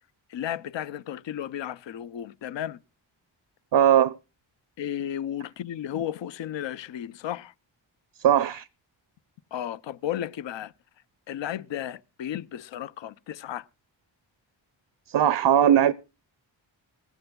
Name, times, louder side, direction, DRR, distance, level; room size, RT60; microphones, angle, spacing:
voice 1, 0.3-2.8 4.8-7.5 9.5-10.7 11.3-13.7, left 10 dB, 70° left, 0.6 m, -33 dB
voice 2, 3.7-4.2 8.2-8.7 15.1-15.9, right 10 dB, 65° right, 0.6 m, -19 dB
20.0 x 15.5 x 2.3 m
cardioid pair, 45°, 46 cm